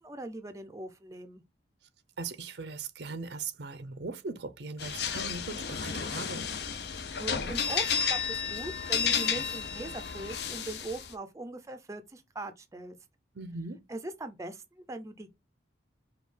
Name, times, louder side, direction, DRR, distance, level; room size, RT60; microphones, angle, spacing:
voice 1, 0.0-1.4 7.2-12.9 13.9-15.3, right 2 dB, 20° right, 0.5 m, -40 dB
voice 2, 2.2-6.5 13.3-13.9, right 4 dB, 70° right, 0.6 m, -39 dB
sound 1, 4.8-11.1, left 6 dB, 65° left, 0.6 m, -32 dB
5.3 x 2.3 x 3.2 m
head